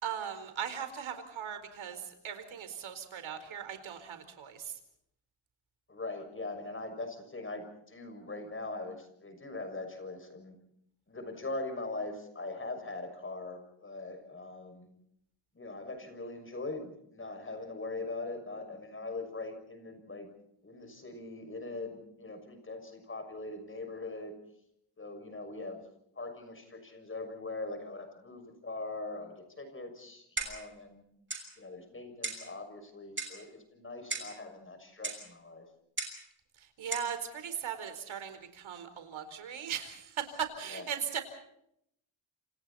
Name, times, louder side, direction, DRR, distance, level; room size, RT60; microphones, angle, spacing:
voice 1, 0.0-4.7 36.6-41.2, right 8 dB, 70° right, 8 dB, 4.5 m, -38 dB
voice 2, 5.9-10.5 11.1-14.9 15.5-20.3 20.6-24.3 25.0-25.8 26.1-31.0 31.6-35.7 40.7-40.8, left 2 dB, 25° left, 7 dB, 6.5 m, -41 dB
Clock, 30.4-30.7 31.3-31.5 32.2-32.5 33.2-33.4 34.1-34.4 35.0-35.2 36.0-36.2 36.9-37.1, right 3 dB, 25° right, 6.3 m, -37 dB
29.0 x 27.5 x 4.3 m, 0.75 s
cardioid pair, 130°, 49 cm